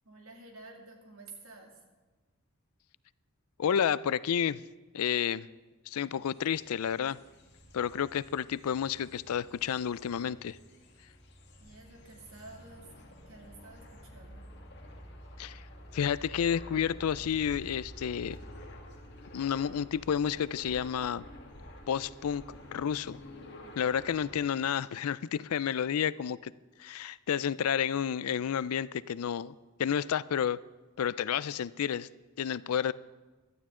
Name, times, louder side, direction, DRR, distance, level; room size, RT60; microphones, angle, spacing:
voice 1, 0.0-1.8 11.6-12.9 13.3-14.5 23.6-23.7 25.7-26.1, right 2 dB, 75° right, 1 dB, 2.4 m, -51 dB
voice 2, 3.6-4.6 4.9-5.5 5.9-7.2 7.7-10.6 15.4-15.6 15.9-18.4 19.3-21.2 21.9-23.2 23.8-26.5 26.8-29.5 29.8-30.6 31.0-32.1 32.4-32.9, left 8 dB, 85° left, 19 dB, 0.4 m, -30 dB
sound 1, 6.1-24.4, left 1 dB, 50° left, 1.8 m, -50 dB
16.5 x 12.0 x 3.7 m, 1.2 s
head